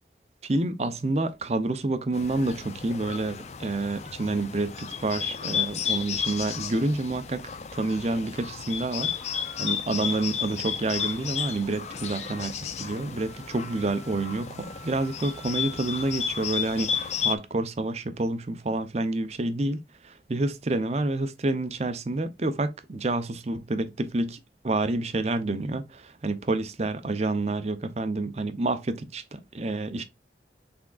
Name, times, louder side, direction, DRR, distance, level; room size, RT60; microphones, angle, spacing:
voice 1, 0.4-19.8 20.0-24.4 24.6-30.0, right 2 dB, 35° right, 0.5 m, -28 dB
Bird, 2.1-17.4, left 7 dB, 40° left, 0.4 m, -33 dB
sound 1, 9.0-17.9, right 3 dB, 15° left, 0.8 m, -51 dB
5.9 x 3.5 x 2.3 m
head